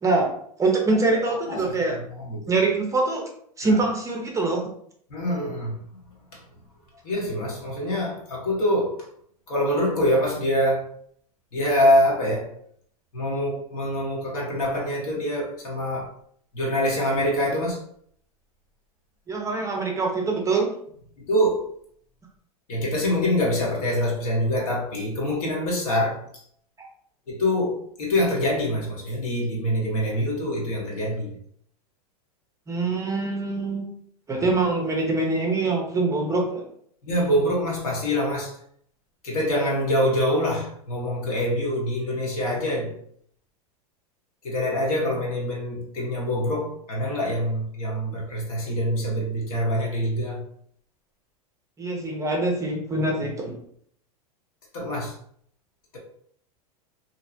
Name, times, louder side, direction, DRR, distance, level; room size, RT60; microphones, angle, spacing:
voice 1, 0.6-2.0 2.5-3.2 3.6-4.6 19.3-20.7 32.7-33.9 34.3-36.6 51.8-53.6, right 3 dB, 15° right, 0.5 m, -24 dB
voice 2, 1.1-1.7 2.2-2.5 3.6-3.8 5.1-5.8 6.3-6.4 7.0-9.1 9.5-10.9 11.5-12.5 13.1-16.1 16.5-17.8 21.2-21.7 22.7-26.2 27.3-31.4 34.3-34.5 37.0-38.6 39.2-43.0 44.4-50.5 54.7-55.1, equal, 65° left, 1.1 m, -25 dB
2.7 x 2.0 x 2.7 m
hypercardioid pair, 100°, 20 cm